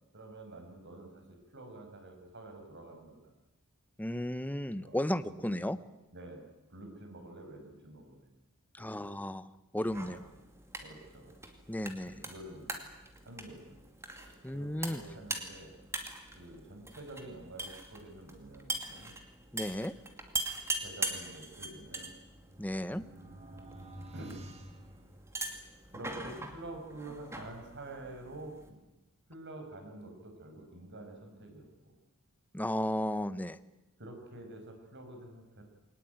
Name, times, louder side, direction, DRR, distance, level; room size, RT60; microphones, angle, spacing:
voice 1, 0.1-1.2 1.5-3.3 4.8-5.6 6.1-6.4 6.7-8.3 8.8-9.2 10.0-10.2 10.8-11.3 12.0-12.7 13.2-13.8 14.1-15.7 16.4-19.1 20.8-22.1 24.1-24.6 25.9-28.8 29.3-32.0 34.0-35.6, right 2 dB, 55° right, 4 dB, 5.8 m, -48 dB
voice 2, 4.0-5.8 8.7-10.2 11.7-12.3 14.4-15.0 19.5-19.9 22.6-23.0 32.5-33.6, left 1 dB, 5° left, 13 dB, 0.8 m, -34 dB
sound 1, 9.8-28.7, right 2 dB, 10° right, 2.4 m, -42 dB
sound 2, 22.1-25.8, right 1 dB, 30° right, 2.3 m, -51 dB
22.5 x 19.0 x 9.4 m, 1.0 s
head